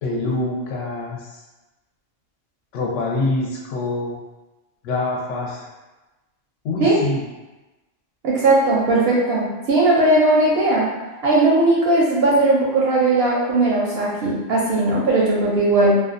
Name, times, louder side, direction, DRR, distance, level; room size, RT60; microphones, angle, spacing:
voice 1, 0.0-1.4 2.7-4.2 4.8-5.7 6.6-7.2, left 2 dB, 75° left, -2 dB, 0.9 m, -25 dB
voice 2, 8.2-10.9 11.2-15.9, right 2 dB, 65° right, -5 dB, 0.7 m, -18 dB
2.5 x 2.1 x 2.5 m, 1.1 s
omnidirectional pair, 1.3 m